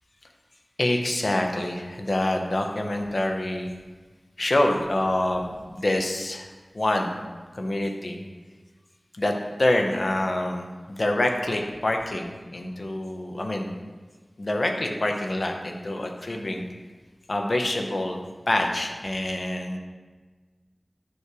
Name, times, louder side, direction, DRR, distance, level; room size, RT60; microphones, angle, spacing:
voice 1, 0.8-3.7 4.4-7.2 7.5-8.2 9.1-13.7 14.4-16.7 17.3-18.2 18.5-19.8, left 1 dB, 65° left, 3 dB, 0.8 m, -26 dB
8.3 x 3.2 x 6.0 m, 1.4 s
wide cardioid pair, 55°, 0 cm